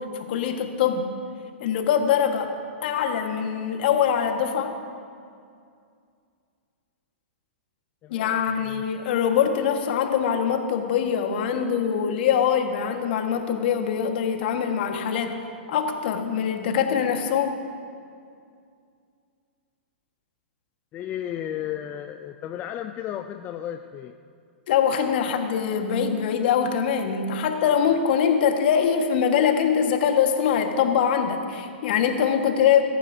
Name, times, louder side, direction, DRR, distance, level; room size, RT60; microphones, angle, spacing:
voice 1, 0.1-1.0 1.6-2.5 2.8-4.8 8.1-15.4 15.7-17.6 24.7-32.8, left 8 dB, 60° left, 4 dB, 1.7 m, -23 dB
voice 2, 8.0-8.8 20.9-24.2, left 11 dB, 30° left, 6 dB, 0.5 m, -34 dB
21.5 x 14.0 x 2.8 m, 2.3 s
hypercardioid pair, 115°, 6 cm